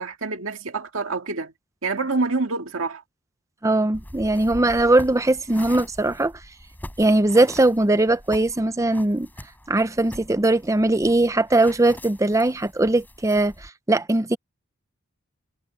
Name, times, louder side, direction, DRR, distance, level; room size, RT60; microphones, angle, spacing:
voice 1, 0.0-1.5 1.8-3.0, right 3 dB, 65° right, 2.2 m, -27 dB
voice 2, 3.6-6.3 7.0-9.3 9.7-14.4, right 2 dB, 15° right, 0.7 m, -20 dB
sound 1, 3.9-13.7, left 1 dB, 10° left, 7.5 m, -43 dB
head